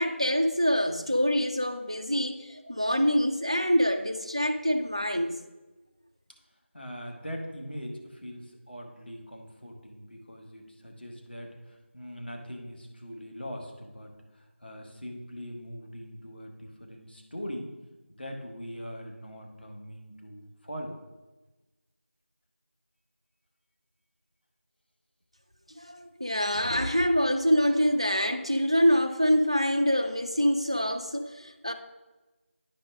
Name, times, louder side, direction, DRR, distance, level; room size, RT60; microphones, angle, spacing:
voice 1, 0.0-5.4 25.8-31.7, equal, 25° right, 0.4 m, -25 dB
voice 2, 6.7-17.7 18.1-21.0, equal, 50° left, 1.4 m, -41 dB
10.0 x 5.1 x 3.6 m
figure-of-eight pair, 175°, 7 cm